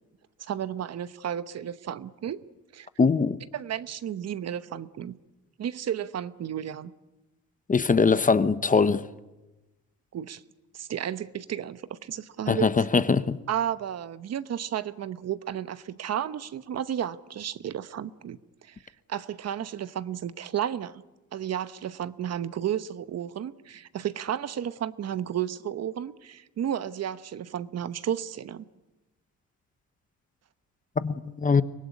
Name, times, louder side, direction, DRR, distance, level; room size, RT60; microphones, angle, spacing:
voice 1, 0.4-2.4 2.7-2.9 3.5-5.2 5.6-6.9 10.1-10.4 10.7-12.9 13.5-18.8 19.1-20.9 21.3-28.6, right 10 dB, 55° right, 1.0 m, -33 dB
voice 2, 3.0-3.4 7.7-9.0 12.5-13.4 31.0-31.6, left 4 dB, 25° left, 1.0 m, -22 dB
24.5 x 17.5 x 9.8 m
cardioid pair, 90°, 30 cm